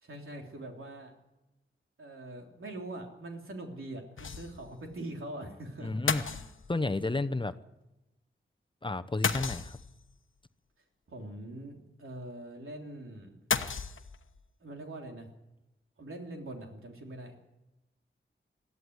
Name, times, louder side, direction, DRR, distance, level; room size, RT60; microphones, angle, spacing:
voice 1, 0.0-1.1 2.0-5.9 6.3-6.5 11.1-13.3 14.6-15.3 16.0-17.3, right 1 dB, 90° right, 1 dB, 3.5 m, -43 dB
sound 1, 4.2-4.7 5.0-5.1 6.1-7.0 9.2-10.1 13.5-14.4, left 5 dB, 75° left, 1.1 m, -33 dB
voice 2, 5.8-6.2 6.7-7.5 8.8-9.8, left 2 dB, 25° left, 10 dB, 0.8 m, -31 dB
21.5 x 13.5 x 9.6 m, 1.0 s
wide cardioid pair, 85°, 21 cm